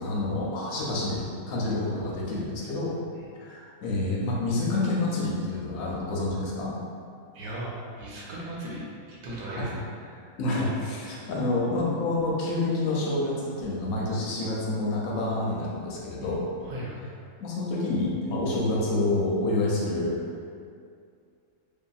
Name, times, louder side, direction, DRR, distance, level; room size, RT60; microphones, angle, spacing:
voice 1, 0.0-2.9 3.4-6.7 9.5-9.7 10.4-16.4 17.4-20.2, left 2 dB, 85° left, -4 dB, 1.0 m, -28 dB
voice 2, 7.3-10.3 16.2-16.3 16.6-17.0, right 1 dB, 85° right, -5 dB, 1.1 m, -38 dB
2.6 x 2.5 x 2.3 m, 2.3 s
omnidirectional pair, 1.5 m